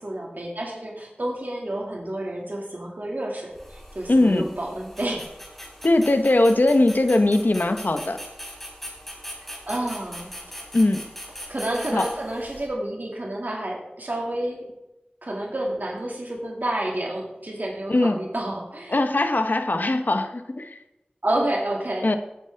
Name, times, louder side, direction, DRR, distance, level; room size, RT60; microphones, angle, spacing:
voice 1, 0.0-5.3 9.7-10.3 11.5-14.7 15.2-19.0 21.2-22.1, right 1 dB, 65° right, -2 dB, 2.3 m, -29 dB
sound 1, 3.5-12.7, equal, 5° left, 3.5 m, -41 dB
voice 2, 4.1-4.5 5.8-8.2 10.7-11.0 11.9-12.1 17.9-18.2 18.9-20.8 22.0-22.2, left 2 dB, 65° left, 8 dB, 1.0 m, -20 dB
18.0 x 9.1 x 3.6 m, 0.94 s
wide cardioid pair, 50°, 3 cm